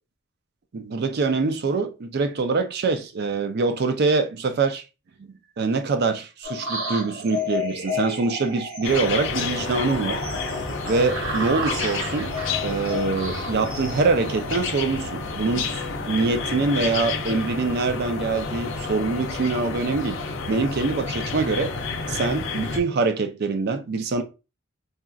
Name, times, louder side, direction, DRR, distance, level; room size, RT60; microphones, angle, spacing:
voice 1, 0.7-4.8 5.2-10.2 10.9-12.3 12.6-20.2 20.5-21.7 22.1-24.2, right 3 dB, 50° right, 0.4 m, -24 dB
sound 1, 6.4-14.8, left 1 dB, 70° right, 1.0 m, -32 dB
sound 2, 8.8-22.8, left 4 dB, 60° left, 0.5 m, -30 dB
3.9 x 2.4 x 2.3 m
head